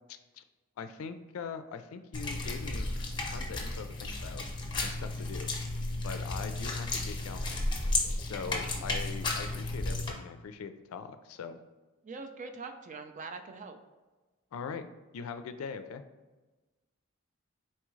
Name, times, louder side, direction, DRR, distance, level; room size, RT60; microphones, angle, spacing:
voice 1, 0.1-0.4 0.8-2.9 3.3-4.5 4.8-5.5 6.0-7.6 8.2-11.6 14.5-14.8 15.1-16.0, left 5 dB, 80° left, 10 dB, 0.4 m, -41 dB
sound 1, 2.1-10.1, left 2 dB, 20° left, 0.7 m, -33 dB
voice 2, 12.0-13.8, right 4 dB, 35° right, 7 dB, 0.4 m, -43 dB
4.3 x 3.6 x 3.1 m, 1.2 s
head